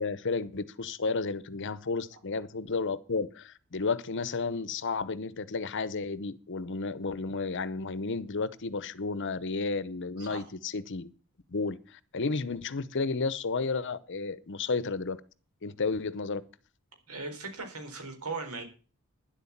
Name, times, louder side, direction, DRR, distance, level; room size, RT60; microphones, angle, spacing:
voice 1, 0.0-11.1 11.5-15.2 15.6-16.4, left 4 dB, 55° left, 0.8 m, -32 dB
voice 2, 17.1-18.6, right 3 dB, 80° right, 4.2 m, -38 dB
10.5 x 8.2 x 7.3 m
head